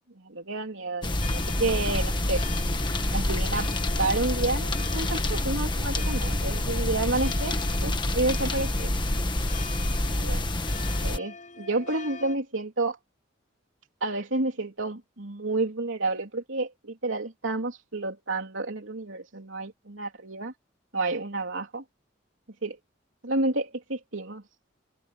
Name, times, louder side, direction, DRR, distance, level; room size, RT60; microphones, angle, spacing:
voice 1, 0.2-2.4 3.1-8.9 10.2-10.5 10.8-13.0 14.0-20.5 20.9-21.8 22.6-22.8 23.2-24.4, right 2 dB, 85° right, 3.3 m, -30 dB
sound 1, 1.0-11.2, left 1 dB, 25° left, 1.5 m, -27 dB
sound 2, 1.2-12.4, left 4 dB, 40° left, 6.4 m, -44 dB
head